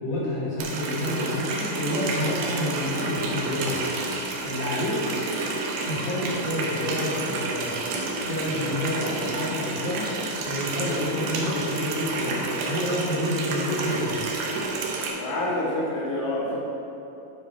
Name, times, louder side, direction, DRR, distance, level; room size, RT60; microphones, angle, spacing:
voice 1, 0.0-3.8 4.4-5.0 5.8-7.9 8.2-10.1 10.4-14.3, left 1 dB, 55° left, -6 dB, 2.5 m, -29 dB
Water tap faucet, 0.6-15.1, right 3 dB, 80° right, 2.8 m, -30 dB
voice 2, 15.2-16.6, left 1 dB, 35° left, -8 dB, 1.5 m, -27 dB
10.0 x 5.1 x 5.0 m, 3.0 s
omnidirectional pair, 4.3 m